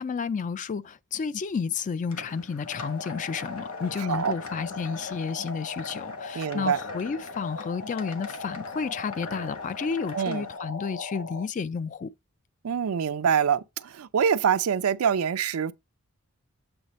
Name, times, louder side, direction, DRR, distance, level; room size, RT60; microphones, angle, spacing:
voice 1, 0.0-12.1, left 5 dB, 35° left, 0.3 m, -31 dB
sound 1, 2.1-10.6, left 4 dB, 90° left, 1.1 m, -45 dB
sound 2, 2.7-11.5, left 3 dB, 70° left, 0.7 m, -39 dB
voice 2, 6.3-6.8 10.1-10.4 12.6-15.7, right 7 dB, 85° right, 0.4 m, -25 dB
7.9 x 3.2 x 4.1 m
head